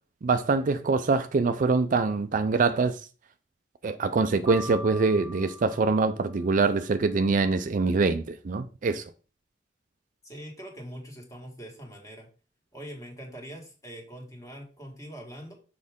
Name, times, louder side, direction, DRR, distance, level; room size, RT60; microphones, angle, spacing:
voice 1, 0.2-3.0 3.8-9.0, right 4 dB, 45° right, 0.4 m, -24 dB
Piano, 4.5-6.6, left 1 dB, ahead, 1.4 m, -42 dB
voice 2, 10.2-12.3 12.7-15.5, equal, 20° left, 1.8 m, -43 dB
6.4 x 4.7 x 3.6 m
head